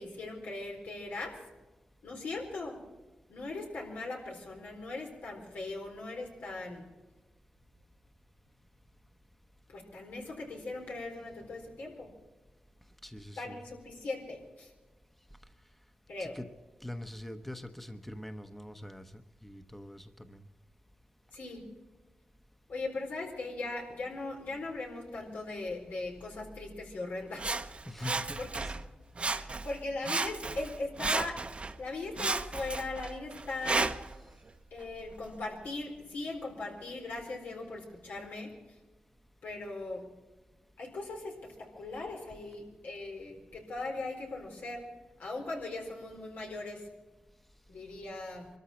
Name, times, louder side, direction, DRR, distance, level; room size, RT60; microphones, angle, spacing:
voice 1, 0.0-1.5 2.0-2.8 3.3-6.9 9.7-12.1 13.4-14.7 16.1-16.4 21.3-21.7 22.7-27.6 28.0-28.6 29.3-31.5 31.8-34.0 34.7-38.5 39.4-40.1 40.8-44.9 45.2-46.9 47.7-48.5, left 2 dB, 90° left, 0 dB, 4.2 m, -39 dB
voice 2, 13.0-13.6 16.2-16.5 16.8-20.4 27.8-28.8, left 1 dB, 5° left, 8 dB, 1.0 m, -44 dB
Sawing, 27.4-28.9 29.2-29.8 30.0-31.7 32.2-34.2 34.8-34.9, right 3 dB, 40° right, 0.8 m, -33 dB
24.5 x 13.5 x 4.4 m, 1.2 s
cardioid pair, 80°, 3 cm